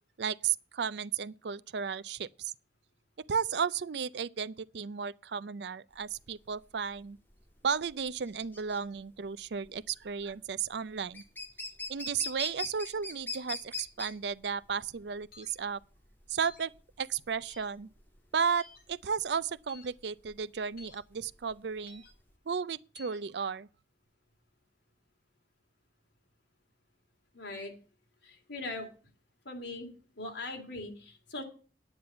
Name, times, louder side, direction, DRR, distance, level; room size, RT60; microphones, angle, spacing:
voice 1, 0.2-2.5 3.3-7.2 7.6-11.2 11.9-15.8 16.3-16.7 17.0-17.9 18.3-22.0 22.5-23.7, right 6 dB, 75° right, 0.5 m, -34 dB
sound 1, 6.0-22.3, left 3 dB, 10° left, 1.8 m, -43 dB
sound 2, 15.3-15.5 16.4-16.7 17.5-17.7 18.6-18.8 19.7-19.9 20.8-21.0 21.9-22.1 22.9-23.2, left 4 dB, 60° left, 4.2 m, -53 dB
voice 2, 27.3-27.7 28.2-28.9 29.4-29.9 30.2-31.4, left 2 dB, 85° left, 3.1 m, -40 dB
9.6 x 9.4 x 5.6 m
head